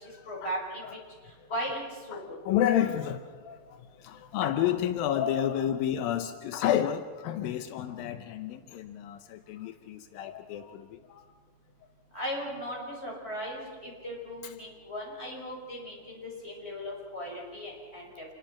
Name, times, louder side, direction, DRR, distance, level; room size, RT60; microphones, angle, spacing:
voice 1, 0.3-1.0 1.5-1.8 2.1-2.4 12.1-18.2, equal, 15° left, -1 dB, 6.0 m, -37 dB
voice 2, 2.1-3.6 4.0-11.0, left 10 dB, 85° left, 8 dB, 2.0 m, -30 dB
28.0 x 22.0 x 5.9 m, 1.6 s
omnidirectional pair, 5.2 m